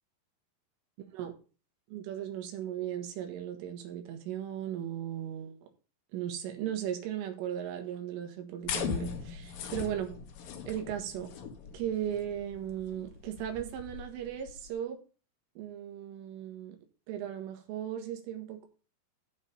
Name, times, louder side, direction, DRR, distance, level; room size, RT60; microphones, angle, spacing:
voice 1, 1.9-5.6 6.1-10.1 10.7-11.3 11.7-15.0 15.6-16.8 17.1-18.7, right 10 dB, 75° right, 4.1 m, -37 dB
sound 1, 8.6-14.7, left 7 dB, 75° left, 2.0 m, -40 dB
14.0 x 5.0 x 5.5 m
omnidirectional pair, 6.0 m